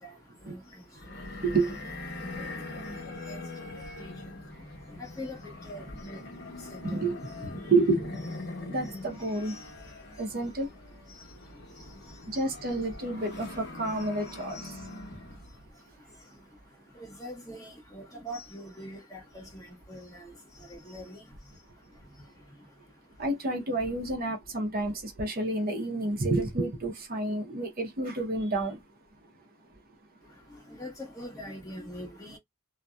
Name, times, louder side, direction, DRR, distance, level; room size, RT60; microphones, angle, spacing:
sound 1, 1.0-15.5, left 2 dB, 50° left, 0.8 m, -42 dB
voice 1, 1.4-1.7 6.8-8.2 8.7-9.6 10.2-10.7 12.3-14.7 23.2-28.8, right 2 dB, 45° right, 0.6 m, -29 dB
voice 2, 5.7-6.2 6.7-7.0 17.0-20.3 20.7-21.2 30.8-32.4, equal, 15° left, 0.9 m, -42 dB
2.6 x 2.0 x 2.2 m
head